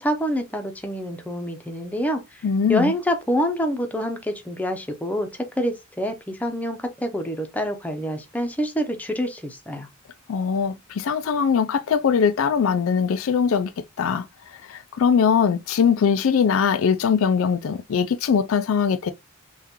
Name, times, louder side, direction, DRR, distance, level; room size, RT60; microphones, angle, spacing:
voice 1, 0.0-2.4 2.7-5.3 5.6-9.9, equal, 5° left, 0.7 m, -26 dB
voice 2, 2.4-2.9 10.3-13.7 14.0-19.1, left 6 dB, 70° left, 0.4 m, -21 dB
5.7 x 2.4 x 2.9 m
head